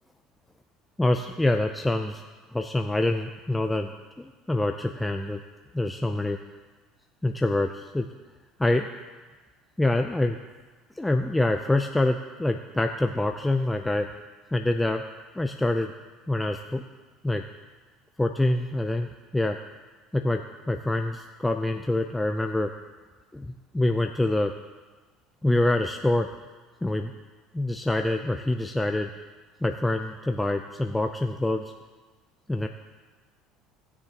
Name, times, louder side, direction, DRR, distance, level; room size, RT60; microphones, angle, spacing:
voice 1, 1.0-2.2 2.5-3.9 4.2-5.4 5.7-6.4 7.2-8.1 8.6-8.9 9.8-10.4 11.0-14.1 14.5-15.0 15.4-15.9 16.3-16.8 17.2-17.4 18.2-19.6 20.1-22.7 23.3-24.5 25.4-26.3 26.8-27.1 27.5-29.1 29.6-31.7 32.5-32.7, left 2 dB, 10° left, 4 dB, 0.5 m, -26 dB
18.5 x 6.9 x 2.9 m, 1.3 s
supercardioid pair, 90°, 0 cm